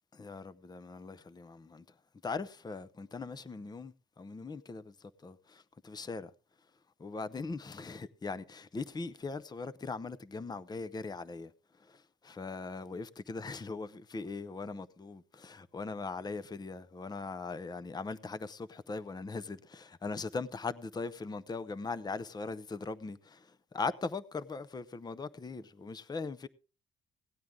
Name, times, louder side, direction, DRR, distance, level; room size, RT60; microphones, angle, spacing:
voice 1, 0.1-1.9 2.2-6.3 7.0-11.5 11.8-26.5, left 4 dB, 20° left, 0.7 m, -40 dB
17.5 x 9.3 x 3.6 m
cardioid pair, 90°, 20 cm